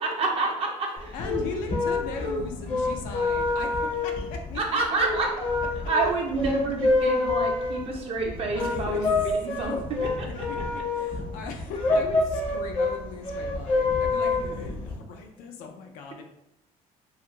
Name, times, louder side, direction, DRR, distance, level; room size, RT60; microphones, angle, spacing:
voice 1, 0.0-1.1 4.5-5.5 5.9-9.7 10.0-10.3 14.4-14.5, right 3 dB, 45° right, 0 dB, 0.5 m, -28 dB
sound 1, 1.0-14.9, left 3 dB, 40° left, 0.6 m, -27 dB
voice 2, 1.1-4.6 8.6-9.1 9.6-9.8 10.5-10.6 10.9-16.2, left 4 dB, 80° left, 3 dB, 0.4 m, -38 dB
2.4 x 2.3 x 2.9 m, 0.82 s
cardioid pair, 130°, 14 cm